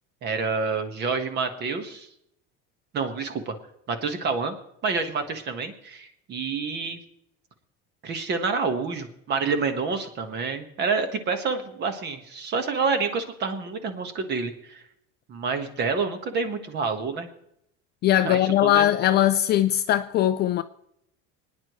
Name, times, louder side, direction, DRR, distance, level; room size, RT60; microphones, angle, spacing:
voice 1, 0.2-2.1 2.9-3.6 3.9-4.6 4.8-7.0 8.0-14.8 15.3-17.3 18.1-18.9, right 4 dB, 35° right, 1.4 m, -28 dB
voice 2, 18.0-20.6, left 12 dB, 35° left, 0.4 m, -20 dB
26.5 x 9.8 x 3.1 m
cardioid pair, 170°, 30 cm